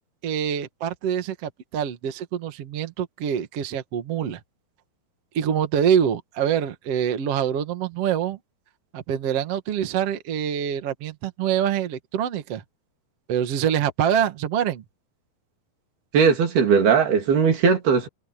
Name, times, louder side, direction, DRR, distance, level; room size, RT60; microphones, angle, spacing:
voice 1, 0.2-4.4 5.3-8.4 8.9-12.6 13.3-14.8, right 9 dB, 50° right, 2.0 m, -25 dB
voice 2, 16.1-18.1, right 6 dB, 70° right, 5.1 m, -18 dB
omnidirectional pair, 4.7 m